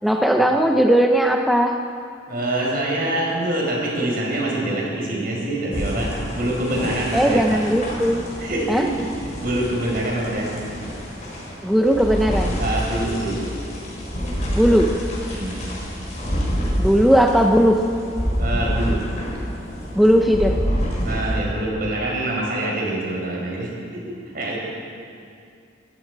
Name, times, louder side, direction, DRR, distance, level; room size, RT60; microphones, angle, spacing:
voice 1, 0.0-1.8 7.1-8.2 8.7-8.9 11.6-12.5 14.5-14.9 16.8-17.8 19.9-20.6, equal, ahead, 2 dB, 0.6 m, -17 dB
voice 2, 2.3-7.6 8.4-8.9 9.4-10.7 12.6-13.4 15.3-15.6 18.4-19.0 21.0-24.6, right 1 dB, 55° right, -2 dB, 4.5 m, -25 dB
sound 1, 5.7-21.6, equal, 40° left, 4.3 m, -27 dB
17.0 x 15.5 x 4.7 m, 2.4 s
head